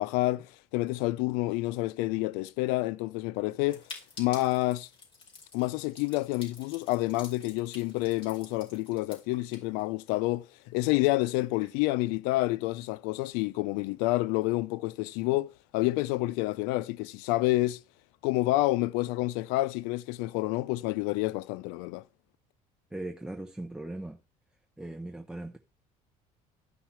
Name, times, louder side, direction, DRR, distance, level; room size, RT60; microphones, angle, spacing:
voice 1, 0.0-3.8 4.2-4.9 5.5-17.8 18.2-22.0, left 19 dB, 90° left, 0.4 m, -29 dB
sound 1, 3.7-10.3 10.7-10.8 10.9-11.0 11.4-11.7, left 4 dB, 35° left, 5.0 m, -49 dB
voice 2, 22.9-24.2 24.8-25.6, right 2 dB, 5° right, 1.0 m, -39 dB
13.5 x 5.6 x 4.4 m
cardioid pair, 105°, 15 cm